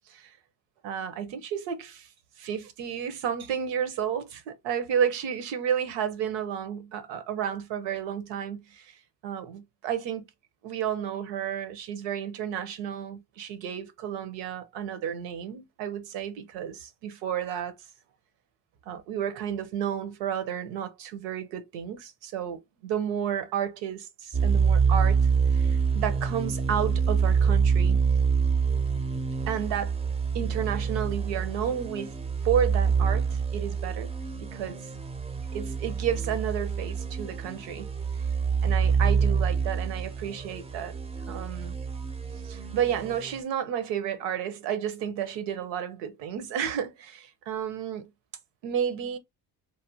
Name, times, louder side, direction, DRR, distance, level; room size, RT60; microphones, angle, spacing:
voice 1, 0.8-2.1 2.4-9.0 9.2-10.2 10.6-17.7 18.9-25.3 25.5-28.0 29.5-30.0 30.3-34.1 34.4-34.9 35.5-37.9 38.1-38.2 38.6-41.0 41.3-41.7 42.4-48.1 48.6-49.2, right 8 dB, 85° right, 0.8 m, -32 dB
sound 1, 24.3-43.4, right 6 dB, 15° right, 0.4 m, -26 dB
3.3 x 2.1 x 2.7 m
cardioid pair, 90°, 43 cm